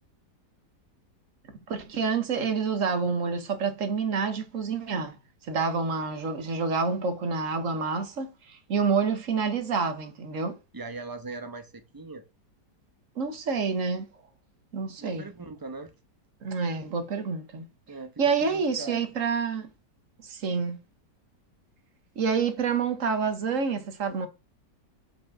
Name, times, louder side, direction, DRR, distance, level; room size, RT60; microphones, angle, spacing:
voice 1, 1.7-5.2 5.5-10.6 13.2-14.1 14.7-15.3 16.4-17.7 18.2-19.7 20.2-20.8 22.2-24.3, right 5 dB, 55° right, 1.3 m, -28 dB
voice 2, 10.7-12.2 15.0-15.9 17.9-19.0, right 3 dB, 20° right, 0.6 m, -40 dB
5.2 x 5.0 x 6.0 m
omnidirectional pair, 1.8 m